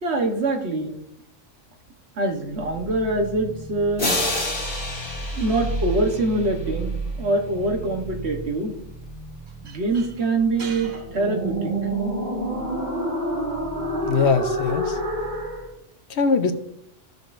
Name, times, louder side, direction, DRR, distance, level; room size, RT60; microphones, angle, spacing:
voice 1, 0.0-1.0 2.2-4.2 5.3-8.7 9.6-11.7, right 2 dB, 60° right, 4 dB, 1.4 m, -24 dB
sound 1, 2.5-15.7, right 1 dB, 15° right, 3.1 m, -30 dB
sound 2, 4.0-6.8, left 2 dB, 45° left, 1.9 m, -29 dB
voice 2, 14.0-15.0 16.1-16.5, left 5 dB, 65° left, 8 dB, 0.9 m, -21 dB
13.5 x 6.6 x 2.6 m, 0.73 s
omnidirectional pair, 1.3 m